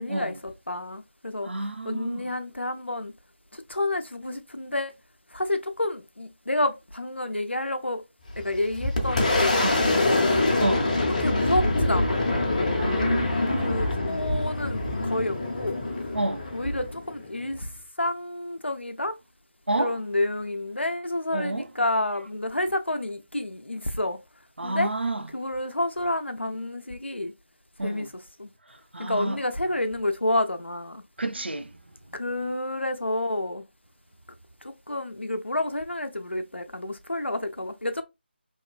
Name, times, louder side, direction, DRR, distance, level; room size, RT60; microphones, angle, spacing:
voice 1, 0.0-3.1 3.5-4.9 5.3-8.0 8.4-10.6 11.1-12.3 13.6-15.8 16.5-17.7 18.0-19.2 19.8-24.2 24.6-24.9 25.3-27.3 27.8-28.5 29.0-31.0 32.1-33.6 34.6-38.0, left 1 dB, 85° left, 0.5 m, -29 dB
voice 2, 1.5-2.2 9.6-9.8 10.6-10.9 12.8-13.9 16.1-16.4 19.7-19.9 21.3-21.6 24.6-25.2 27.8-28.1 28.9-29.4 31.2-31.7, right 2 dB, 70° right, 0.5 m, -29 dB
Boom, 8.3-17.7, left 2 dB, 40° left, 0.7 m, -25 dB
2.9 x 2.2 x 2.3 m
figure-of-eight pair, 160°, 6 cm